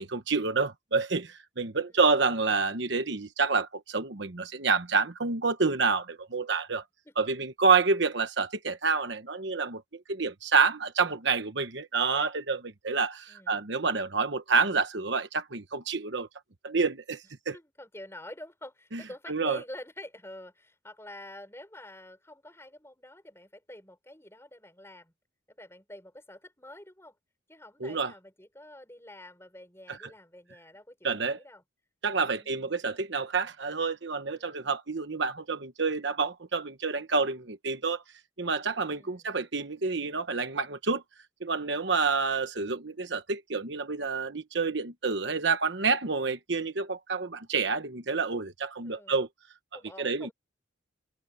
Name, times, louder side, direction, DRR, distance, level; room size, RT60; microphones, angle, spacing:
voice 1, 0.0-6.8 7.2-9.8 10.1-16.3 16.6-17.6 18.9-19.0 19.3-19.6 27.8-28.1 31.0-31.4 32.0-38.0 38.4-41.0 41.4-49.3 50.0-50.3, right 4 dB, 60° right, 1.2 m, -28 dB
voice 2, 1.8-2.5 7.0-7.1 13.3-13.6 17.5-25.1 25.5-27.2 27.5-31.6 32.2-32.8 34.3-34.7 38.9-39.3 48.8-49.3 49.7-50.3, left 1 dB, 10° left, 6.8 m, -47 dB
head